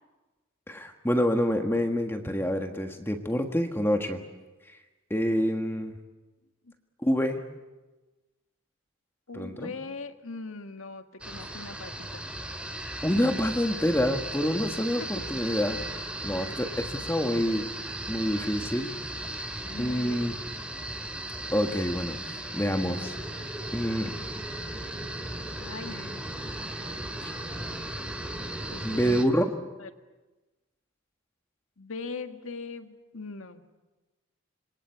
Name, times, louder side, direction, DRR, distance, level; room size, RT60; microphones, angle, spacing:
voice 1, 0.7-4.2 5.1-5.9 7.0-7.4 9.3-9.7 13.0-17.7 18.1-18.9 19.8-20.3 21.5-22.2 22.5-23.2 23.7-24.1 25.9-26.0 27.2-27.3 28.8-29.4, equal, 10° left, 4 dB, 1.5 m, -27 dB
voice 2, 9.3-12.2 15.0-15.2 19.7-20.6 25.6-26.3 28.7-29.5 29.8-29.9 31.8-33.6, left 3 dB, 80° left, 7 dB, 1.8 m, -40 dB
sound 1, 11.2-29.3, right 1 dB, 5° right, 2.4 m, -36 dB
26.5 x 23.0 x 8.4 m, 1.2 s
head